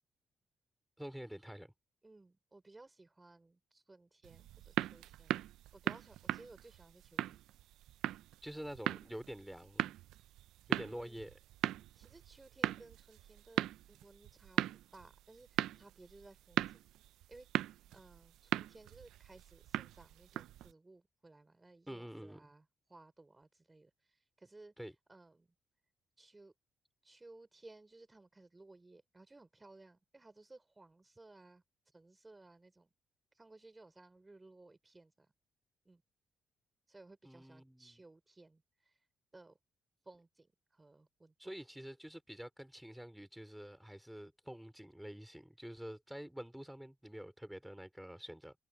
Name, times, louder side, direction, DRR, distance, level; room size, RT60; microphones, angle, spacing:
voice 1, 1.0-1.7 8.4-9.9 10.7-11.3 21.9-22.5 24.8-24.9 37.2-38.0 41.4-48.5, equal, 5° right, 3.7 m, -47 dB
voice 2, 2.0-5.4 5.7-7.4 10.8-11.2 11.9-16.8 17.3-17.6 17.9-24.7 25.1-25.5 26.2-26.5 27.0-32.9 33.3-35.3 35.8-36.0 36.9-39.1 39.3-39.6 40.0-41.5, right 2 dB, 20° right, 4.6 m, -59 dB
sound 1, 4.2-20.7, right 13 dB, 85° right, 0.4 m, -39 dB
cardioid pair, 90°, 0 cm